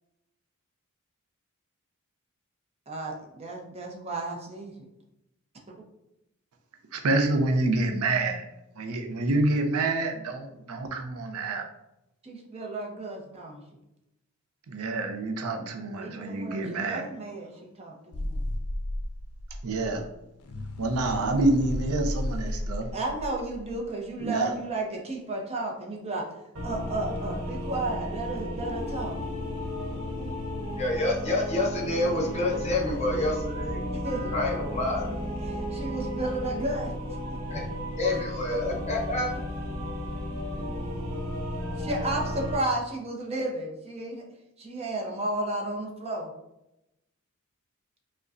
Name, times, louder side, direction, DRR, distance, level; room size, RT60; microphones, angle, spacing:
voice 1, 2.9-4.7 5.7-5.8 12.2-13.6 16.0-18.4 20.5-20.9 22.9-26.2 26.6-29.2 29.9-30.4 33.9-34.3 35.1-37.2 41.8-44.2 44.6-46.3, right 2 dB, 30° right, 0 dB, 0.6 m, -33 dB
voice 2, 6.9-8.4 8.8-11.6 14.7-17.0 19.6-20.0 20.8-22.9 24.2-24.5, right 2 dB, 85° right, 4 dB, 0.5 m, -27 dB
sound 1, 18.1-24.2, left 1 dB, 85° left, 0.4 m, -34 dB
sound 2, 26.6-42.6, equal, 70° right, 1.0 m, -34 dB
voice 3, 30.8-33.9 34.3-35.0 37.5-37.6 37.9-39.3, left 2 dB, 30° left, -2 dB, 0.8 m, -28 dB
5.0 x 2.2 x 2.5 m, 0.88 s
head